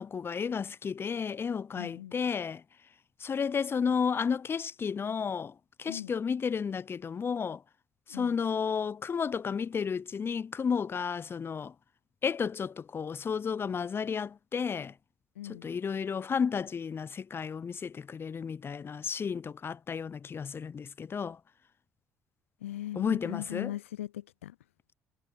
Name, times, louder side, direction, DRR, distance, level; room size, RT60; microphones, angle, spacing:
voice 1, 0.0-2.6 3.2-5.5 5.8-7.6 8.1-11.7 12.2-14.9 15.6-21.4 22.9-23.7, left 6 dB, 35° left, 0.7 m, -32 dB
voice 2, 1.8-2.2 5.8-6.1 8.1-8.4 15.4-15.7 22.6-24.6, left 13 dB, 85° left, 0.4 m, -39 dB
hypercardioid pair, 55°, 7 cm